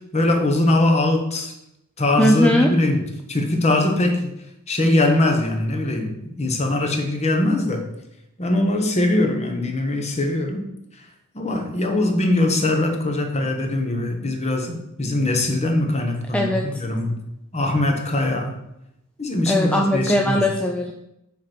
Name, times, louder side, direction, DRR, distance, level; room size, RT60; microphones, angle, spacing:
voice 1, 0.0-1.5 2.0-4.3 4.7-7.9 8.4-10.7 11.3-17.2 17.5-18.6 19.2-20.5, left 1 dB, 30° left, 4 dB, 1.1 m, -21 dB
voice 2, 2.2-2.7 16.3-16.6 19.5-20.9, left 1 dB, 5° left, 1 dB, 0.5 m, -19 dB
5.8 x 4.5 x 5.9 m, 0.83 s
head